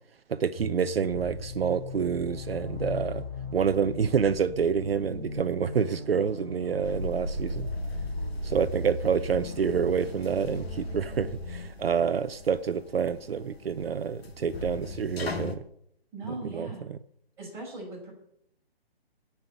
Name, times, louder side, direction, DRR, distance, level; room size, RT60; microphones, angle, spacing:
voice 1, 0.3-3.2 3.5-7.7 8.4-15.6 16.5-16.7, right 7 dB, 70° right, 0.7 m, -28 dB
sound 1, 0.5-11.7, left 3 dB, 30° left, 3.4 m, -39 dB
sound 2, 6.8-15.6, left 1 dB, 75° left, 2.2 m, -37 dB
voice 2, 16.1-16.8 17.4-18.1, right 2 dB, 5° right, 5.7 m, -39 dB
16.0 x 5.9 x 7.9 m
hypercardioid pair, 170°, 31 cm